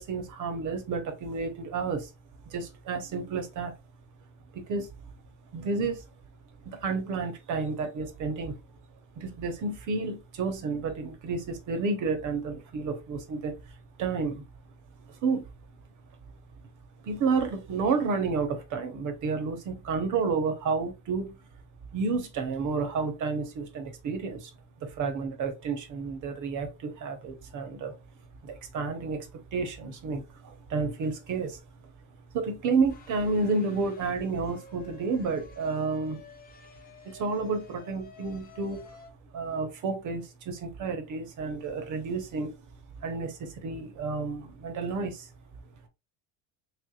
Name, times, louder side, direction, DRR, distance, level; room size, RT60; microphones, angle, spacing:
voice 1, 0.0-2.1 2.4-3.7 4.5-4.9 5.5-6.0 6.6-8.6 9.2-14.4 15.1-15.4 17.0-21.4 21.9-24.5 24.8-27.9 28.4-31.6 32.3-36.2 37.0-38.8 39.3-42.5 43.0-45.3, right 4 dB, 50° right, 1.0 m, -31 dB
sound 1, 32.9-39.1, left 4 dB, 25° left, 0.7 m, -51 dB
3.5 x 3.4 x 2.3 m
cardioid pair, 150°, 39 cm